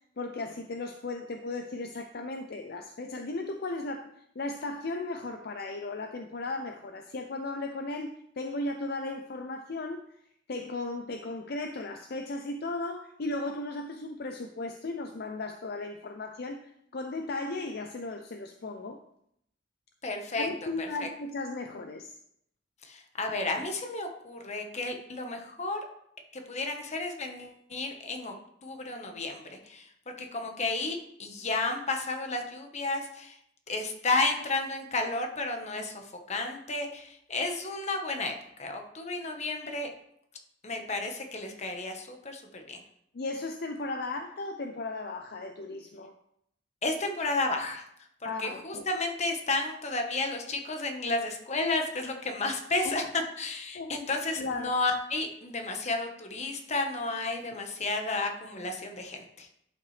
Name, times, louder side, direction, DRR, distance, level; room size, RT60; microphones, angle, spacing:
voice 1, 0.2-4.1 4.4-10.0 10.5-19.0 20.4-22.1 43.1-46.2 48.2-48.9 52.8-53.0 53.7-53.9 54.4-54.8, left 2 dB, 55° left, 5 dB, 0.5 m, -36 dB
voice 2, 20.0-20.5 20.8-21.1 22.8-25.8 26.3-28.3 28.6-33.4 33.7-38.3 38.6-39.9 40.6-42.8 46.8-47.8 48.4-59.5, left 2 dB, 40° left, 4 dB, 1.2 m, -32 dB
11.5 x 5.7 x 3.3 m, 0.73 s
head